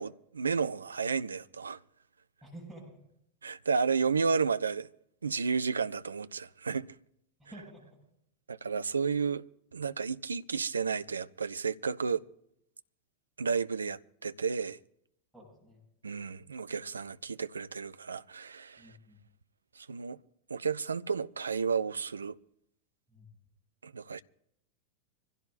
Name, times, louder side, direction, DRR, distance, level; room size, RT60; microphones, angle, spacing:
voice 1, 0.0-1.8 3.4-4.9 5.2-6.9 8.5-9.4 9.7-12.2 13.4-14.8 16.0-18.9 19.8-20.2 20.5-22.4 23.8-24.2, right 5 dB, 75° right, 0.5 m, -32 dB
voice 2, 2.4-3.0 7.4-7.9 15.3-15.8 18.8-19.2 23.1-23.3, right 1 dB, 5° right, 7.7 m, -50 dB
25.5 x 16.0 x 2.6 m
figure-of-eight pair, 90°, 0 cm